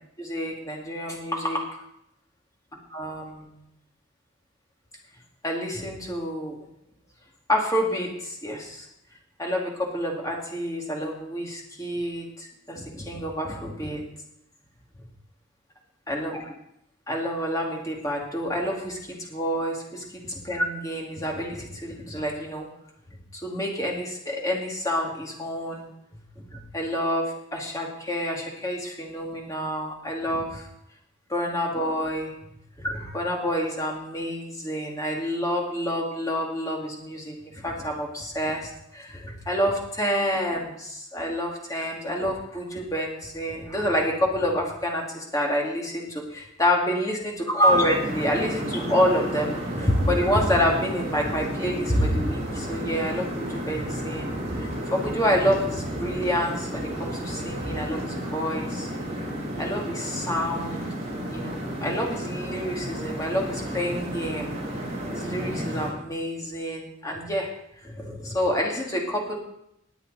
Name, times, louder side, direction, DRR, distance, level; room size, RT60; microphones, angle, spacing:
voice 1, 0.2-1.8 2.9-3.6 5.4-6.6 7.5-8.9 9.4-14.0 16.1-16.4 17.1-22.7 23.3-25.9 26.4-30.7 31.3-32.3 32.8-58.9 59.6-60.9 61.3-64.5 65.1-67.5 67.8-69.4, equal, 15° left, -1 dB, 2.5 m, -28 dB
sound 1, 47.7-65.9, equal, 35° right, 4.3 m, -32 dB
19.5 x 8.0 x 4.2 m, 0.78 s
head